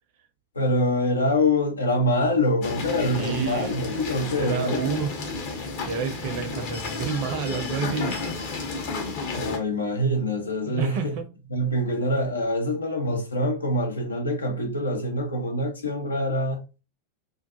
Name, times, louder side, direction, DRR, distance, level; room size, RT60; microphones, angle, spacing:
voice 1, 0.5-5.0 9.4-11.2 11.5-16.6, left 1 dB, 75° left, 0.7 m, -25 dB
sound 1, 2.6-9.6, left 3 dB, 45° left, 0.8 m, -32 dB
voice 2, 3.1-3.8 4.4-5.1 5.8-8.2 10.7-11.3, right 6 dB, 45° right, 0.6 m, -29 dB
2.4 x 2.3 x 2.5 m
figure-of-eight pair, 90°, 0 cm